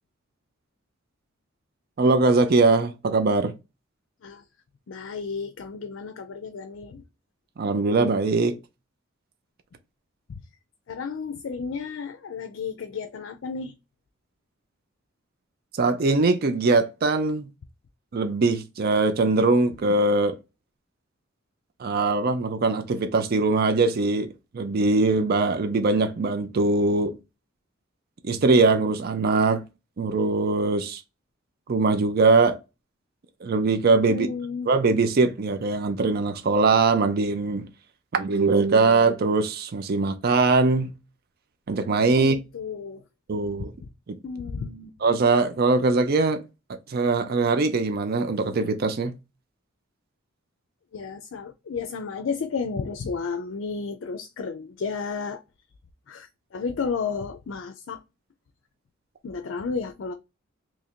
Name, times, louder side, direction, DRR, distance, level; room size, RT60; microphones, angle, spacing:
voice 1, 2.0-3.5 7.6-8.6 15.7-17.5 18.1-20.3 21.8-24.3 24.5-27.1 28.2-29.6 30.0-31.0 31.7-32.6 33.4-34.3 34.7-37.6 38.1-40.9 41.7-42.4 43.3-43.7 45.0-46.4 46.9-49.1, right 3 dB, 50° right, 0.4 m, -21 dB
voice 2, 4.9-7.0 10.3-10.4 10.9-13.7 34.1-34.7 42.1-43.0 44.2-45.0 50.9-55.4 56.1-58.0 59.2-60.1, left 5 dB, 65° left, 0.4 m, -32 dB
3.0 x 2.5 x 4.3 m
head